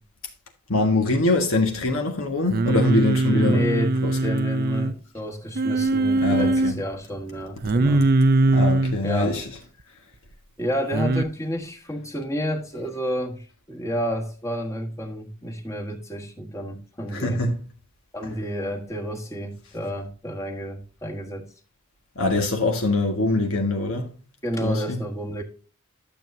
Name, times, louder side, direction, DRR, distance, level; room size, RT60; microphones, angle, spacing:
voice 1, 0.7-3.6 4.0-4.2 6.2-6.8 8.5-9.4 17.1-17.6 22.1-24.1 24.6-25.0, left 2 dB, 70° left, 1.6 m, -23 dB
Singing, 2.5-4.9 5.6-6.7 7.6-9.0 10.9-11.2, right 2 dB, 45° right, 0.5 m, -21 dB
voice 2, 3.3-8.1 9.0-9.4 10.6-17.4 18.1-21.5 24.4-25.4, equal, 15° left, 1.4 m, -30 dB
12.0 x 7.0 x 2.7 m
head